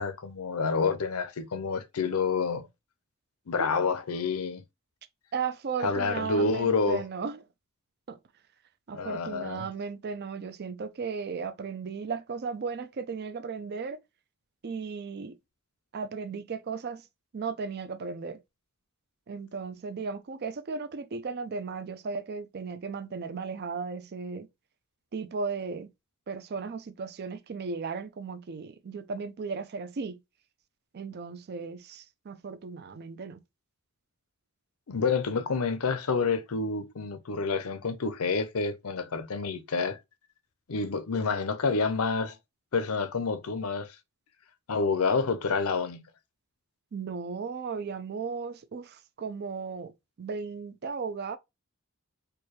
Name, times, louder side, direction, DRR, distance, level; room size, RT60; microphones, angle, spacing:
voice 1, 0.0-2.7 3.5-4.6 5.8-7.0 8.9-9.7 34.9-40.0 40.7-42.4 42.7-44.0 44.7-46.0, left 4 dB, 75° left, 0.6 m, -28 dB
voice 2, 5.3-7.4 8.1-8.2 8.9-14.0 14.6-15.4 15.9-17.1 17.3-18.4 19.3-24.5 25.1-25.9 26.3-30.2 30.9-33.4 46.9-49.9 50.2-51.4, right 5 dB, 45° right, 0.4 m, -35 dB
4.5 x 2.2 x 3.1 m
head